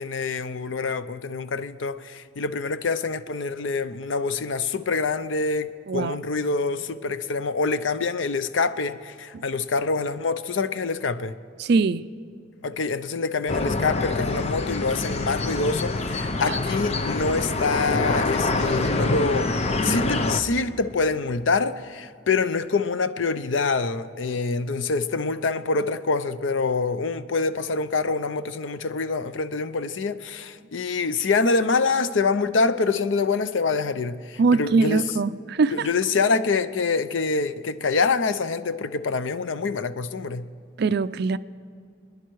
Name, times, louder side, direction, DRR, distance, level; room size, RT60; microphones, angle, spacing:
voice 1, 0.0-11.3 12.6-19.6 19.8-35.2 35.7-40.5, left 4 dB, 90° left, 0.6 m, -25 dB
voice 2, 11.6-12.0 19.8-20.1 34.4-35.9 40.8-41.4, right 4 dB, 60° right, 0.4 m, -22 dB
sound 1, 13.5-20.4, left 2 dB, 35° left, 0.7 m, -25 dB
30.0 x 10.5 x 4.6 m
head